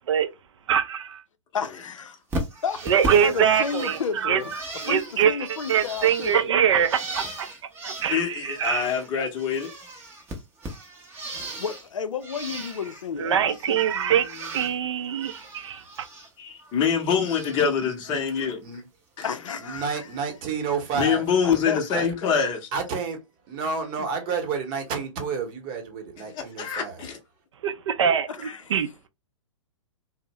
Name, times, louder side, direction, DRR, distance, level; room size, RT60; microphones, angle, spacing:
voice 1, 0.7-1.2 2.9-4.4 4.8-5.4 5.7-7.5 7.8-8.8 13.2-15.8 27.6-28.3 28.7-28.9, right 8 dB, 60° right, 0.4 m, -23 dB
voice 2, 1.5-2.1 2.6-2.8 3.2-4.5 4.9-6.6 11.3-15.3 19.2-20.1 21.4-22.3 24.0-24.1 28.3-28.8, left 6 dB, 75° left, 0.5 m, -33 dB
Bird, 2.3-9.1 9.4-11.9 12.2-13.1 13.4-14.7 15.0-16.3 16.6-17.7 18.0-18.5 19.8-19.9 20.9-21.0, right 1 dB, 15° right, 0.6 m, -37 dB
voice 3, 8.1-9.7 16.4-18.6 19.2-19.3 20.9-22.6 26.3-27.2, left 7 dB, 25° left, 0.6 m, -25 dB
voice 4, 19.6-21.2 21.9-22.0 22.7-23.2 23.5-27.0, right 5 dB, 35° right, 0.9 m, -30 dB
2.5 x 2.0 x 2.9 m
figure-of-eight pair, 120°, 16 cm